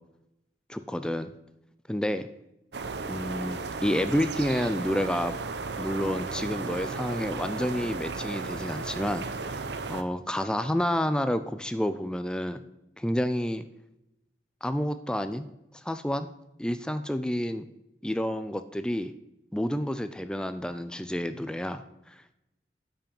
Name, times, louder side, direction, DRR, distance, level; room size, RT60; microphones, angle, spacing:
voice 1, 0.7-1.3 1.9-2.3 3.1-5.4 5.8-12.6 13.0-13.6 14.6-15.5 15.8-16.3 16.6-17.7 18.0-19.1 19.5-22.2, equal, 5° left, 10 dB, 0.4 m, -29 dB
sound 1, 2.7-10.0, right 4 dB, 80° right, 0.7 m, -35 dB
8.8 x 5.7 x 5.3 m, 0.88 s
head